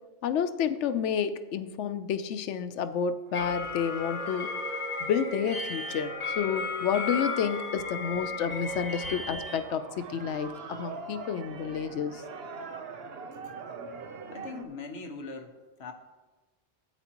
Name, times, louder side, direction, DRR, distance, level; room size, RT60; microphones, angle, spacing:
voice 1, 0.2-4.5 5.0-12.2, left 7 dB, 85° left, 11 dB, 0.9 m, -30 dB
sound 1, 3.3-9.6, left 3 dB, 45° left, 3.2 m, -34 dB
sound 2, 3.3-14.6, right 4 dB, 60° right, 1.0 m, -44 dB
voice 2, 14.3-15.9, left 3 dB, 65° left, 5 dB, 1.2 m, -41 dB
13.0 x 9.0 x 2.9 m, 1.2 s
omnidirectional pair, 1.2 m